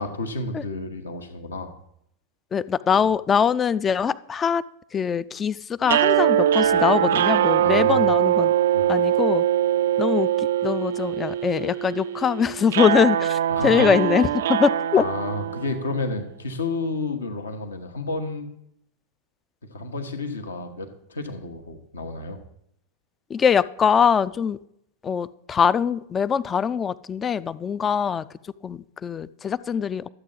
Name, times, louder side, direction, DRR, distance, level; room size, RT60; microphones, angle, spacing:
voice 1, 0.0-1.7 7.6-8.1 8.7-8.9 13.5-14.0 15.0-18.5 19.7-22.4, left 2 dB, 70° left, 7 dB, 1.1 m, -31 dB
voice 2, 2.5-4.6 4.9-8.5 8.9-9.4 10.0-15.0 23.3-24.6 25.0-28.2 28.6-30.1, left 7 dB, 20° left, 17 dB, 0.3 m, -22 dB
sound 1, 5.8-16.1, right 11 dB, 60° right, 0.3 m, -22 dB
12.5 x 7.9 x 3.9 m, 0.75 s
figure-of-eight pair, 90°, 0 cm